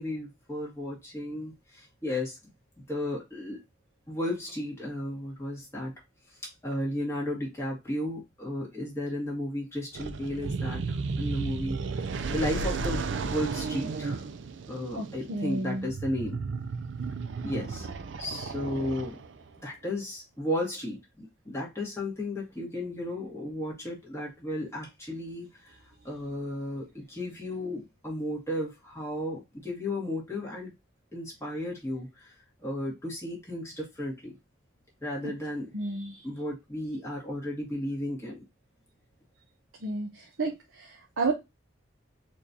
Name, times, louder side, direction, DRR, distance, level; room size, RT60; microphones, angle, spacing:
voice 1, 0.0-2.4 2.9-3.6 4.1-5.9 6.6-11.8 12.3-14.2 14.7-16.4 17.4-17.9 18.2-19.2 19.6-25.7 26.0-30.7 31.1-32.3 32.6-34.3 35.0-35.7 36.2-38.4, left 1 dB, 15° left, -3 dB, 1.8 m, -34 dB
sound 1, 9.9-19.5, right 4 dB, 65° right, 0.4 m, -34 dB
voice 2, 14.9-15.9 35.7-36.2 39.8-40.1 40.4-41.3, right 3 dB, 85° right, 1 dB, 0.8 m, -31 dB
4.4 x 3.1 x 2.6 m, 0.21 s
head